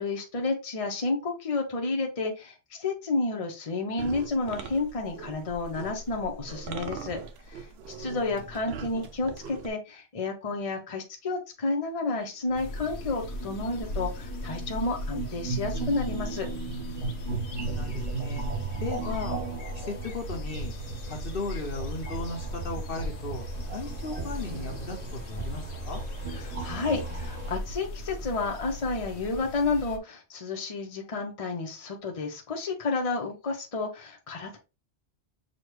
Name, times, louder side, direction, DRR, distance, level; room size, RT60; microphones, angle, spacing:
voice 1, 0.0-7.2 7.5-7.7 8.0-16.5 26.4-34.6, left 3 dB, 35° left, 2 dB, 0.9 m, -31 dB
sound 1, 4.0-9.7, right 5 dB, 70° right, 0.9 m, -41 dB
sound 2, 12.2-27.6, right 4 dB, 35° right, 2.1 m, -36 dB
sound 3, 12.6-30.0, left 1 dB, 90° left, 1.0 m, -38 dB
voice 2, 17.6-18.5 18.8-19.4 19.7-20.7 21.1-26.0, left 3 dB, 60° left, 3 dB, 1.1 m, -36 dB
6.3 x 2.5 x 3.1 m, 0.28 s
omnidirectional pair, 1.1 m